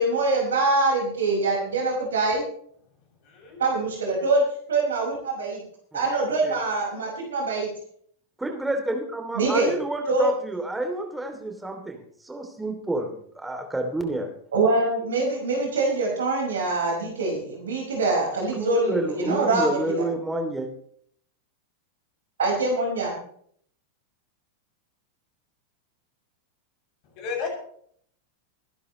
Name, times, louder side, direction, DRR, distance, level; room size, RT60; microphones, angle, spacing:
voice 1, 0.0-2.4 3.6-4.4 4.7-5.6 5.9-7.7 9.3-9.7 10.1-10.3 14.5-19.8 22.4-23.2, right 3 dB, 65° right, -1 dB, 5.4 m, -24 dB
voice 2, 3.2-3.6 27.2-27.5, left 6 dB, 45° left, 0 dB, 7.3 m, -32 dB
voice 3, 8.4-14.3 18.5-20.7, right 2 dB, 5° right, 4 dB, 2.9 m, -29 dB
25.0 x 11.0 x 3.2 m, 0.63 s
figure-of-eight pair, 90°, 0 cm